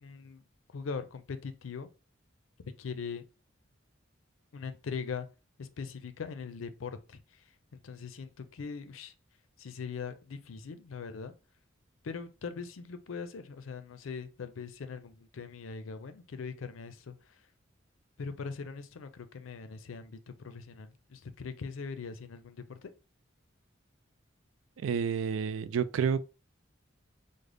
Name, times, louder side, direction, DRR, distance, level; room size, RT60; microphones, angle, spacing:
voice 1, 0.0-0.4 0.7-1.9 2.8-3.2 4.5-5.3 5.6-7.2 7.8-9.1 9.6-11.3 12.0-17.1 18.2-20.2 20.4-22.9, left 5 dB, 90° left, 0.5 m, -41 dB
voice 2, 24.8-26.3, right 7 dB, 75° right, 0.3 m, -29 dB
3.7 x 2.1 x 3.3 m
head